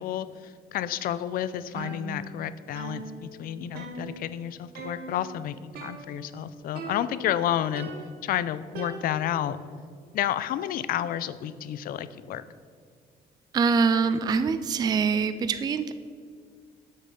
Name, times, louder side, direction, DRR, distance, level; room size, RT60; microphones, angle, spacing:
voice 1, 0.0-3.0 3.4-7.9 8.2-9.6 10.1-12.4, left 11 dB, 60° left, 14 dB, 0.4 m, -30 dB
sound 1, 1.8-2.5 2.8-4.4 4.8-5.3 5.8-6.4 6.8-7.4 7.8-9.5, right 3 dB, 70° right, 1.1 m, -41 dB
voice 2, 13.5-15.9, right 5 dB, 25° right, 11 dB, 0.3 m, -24 dB
7.5 x 6.5 x 3.8 m, 2.1 s
cardioid pair, 110°, 17 cm